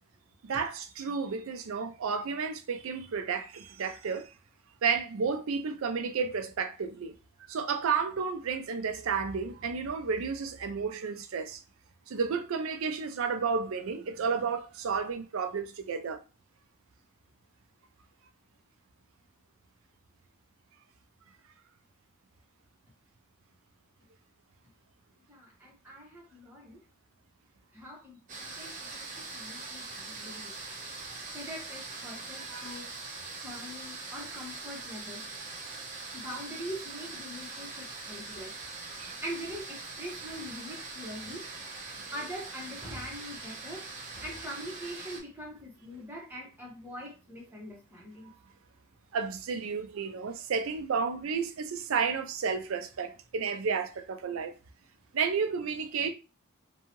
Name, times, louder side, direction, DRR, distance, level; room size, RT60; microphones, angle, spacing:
voice 1, 0.4-4.3 4.8-7.1 7.4-11.6 12.1-16.2 32.4-32.8 39.0-39.1 49.1-54.5 55.1-56.1, right 5 dB, 80° right, 0.4 m, -32 dB
voice 2, 25.3-26.8 27.7-30.5 31.3-32.9 33.4-35.2 36.1-38.5 39.0-41.4 42.1-43.9 44.1-48.3, equal, 10° right, 1.0 m, -43 dB
sound 1, 28.3-45.2, right 3 dB, 35° right, 0.7 m, -42 dB
2.7 x 2.2 x 2.9 m
head